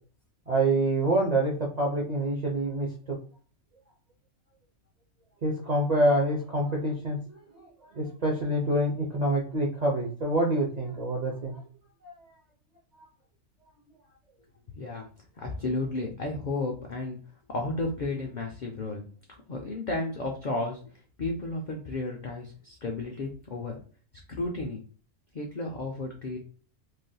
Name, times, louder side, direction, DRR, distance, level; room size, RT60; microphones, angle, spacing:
voice 1, 0.5-3.2 5.4-7.2 7.9-11.6 12.0-12.1, right 1 dB, 55° right, -2 dB, 0.4 m, -26 dB
voice 2, 14.8-15.1 15.4-17.2 17.5-19.0 19.5-20.9 21.2-23.8 24.3-24.8 25.3-26.4, left 2 dB, 70° left, 1 dB, 0.4 m, -33 dB
3.3 x 2.6 x 2.2 m, 0.40 s
omnidirectional pair, 1.4 m